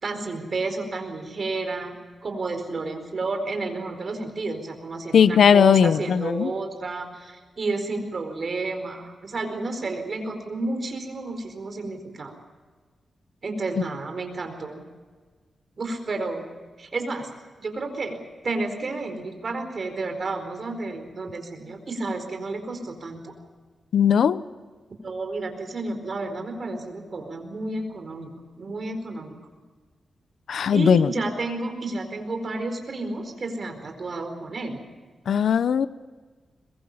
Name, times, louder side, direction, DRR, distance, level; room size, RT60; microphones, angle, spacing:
voice 1, 0.0-1.9 2.2-12.3 13.4-14.8 15.8-16.5 16.8-17.3 17.6-18.2 18.4-23.3 25.0-29.3 30.5-34.8, right 3 dB, 45° right, 6 dB, 4.5 m, -31 dB
voice 2, 5.1-6.5 23.9-24.4 30.5-31.1 35.3-35.9, left 7 dB, 80° left, 15 dB, 0.8 m, -18 dB
22.5 x 21.5 x 7.2 m, 1.4 s
wide cardioid pair, 125°, 0 cm